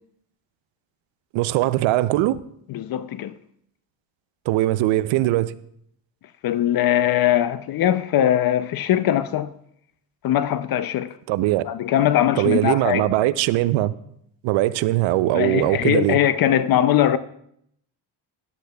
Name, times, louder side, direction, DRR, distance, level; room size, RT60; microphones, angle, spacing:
voice 1, 1.3-2.4 4.5-5.5 11.3-11.7 12.4-13.9 14.4-16.2, right 16 dB, 85° right, 0.6 m, -20 dB
voice 2, 2.7-3.3 6.4-9.5 10.2-11.1 11.6-13.1 15.3-17.2, left 11 dB, 55° left, 0.5 m, -21 dB
13.0 x 10.0 x 2.3 m
cardioid pair, 95°, 45 cm